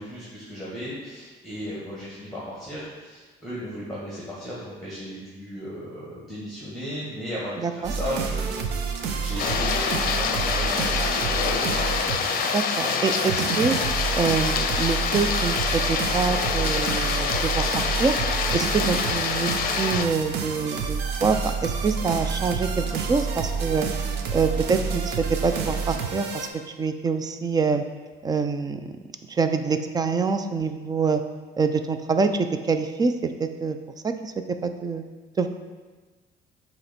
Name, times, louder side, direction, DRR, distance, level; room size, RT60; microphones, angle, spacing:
voice 1, 0.0-11.9, equal, ahead, -7 dB, 1.6 m, -35 dB
voice 2, 7.6-7.9 12.5-13.7 14.1-18.1 18.5-19.5 19.8-23.9 24.3-26.5 26.8-27.8 28.2-28.9 29.3-31.2 31.6-33.8 34.0-34.3 34.6-35.0 35.4-35.5, right 4 dB, 25° right, 8 dB, 0.4 m, -25 dB
sound 1, 7.8-26.5, right 5 dB, 85° right, 0.6 m, -29 dB
sound 2, 9.4-20.1, left 6 dB, 60° left, 0.5 m, -26 dB
7.5 x 3.0 x 4.2 m, 1.3 s
cardioid pair, 110°, 17 cm